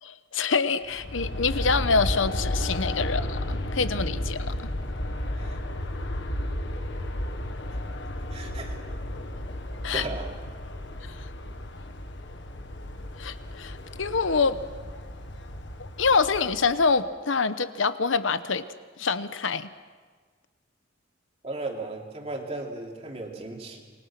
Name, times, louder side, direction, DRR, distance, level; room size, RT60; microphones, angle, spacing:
voice 1, 0.0-4.5 9.8-10.1 13.2-14.6 15.8-18.7 19.0-19.7, left 4 dB, 80° left, 12 dB, 1.0 m, -26 dB
Aircraft, 0.8-16.9, left 1 dB, 65° left, 1.6 m, -33 dB
voice 2, 8.3-8.8 9.9-10.3 21.4-23.9, right 2 dB, 30° right, 0 dB, 3.0 m, -36 dB
27.0 x 21.0 x 6.1 m, 1.5 s
head